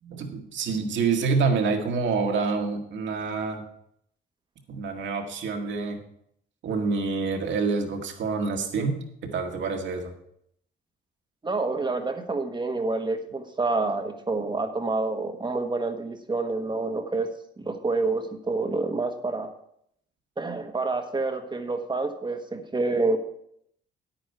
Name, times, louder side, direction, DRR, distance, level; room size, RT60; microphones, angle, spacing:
voice 1, 0.0-3.6 4.7-6.0 6.6-10.1, right 4 dB, 70° right, 3 dB, 1.9 m, -27 dB
voice 2, 11.4-17.3 17.6-19.5 20.4-23.2, right 3 dB, 25° right, 5 dB, 1.3 m, -28 dB
9.8 x 9.1 x 4.7 m, 0.71 s
cardioid pair, 90°, 20 cm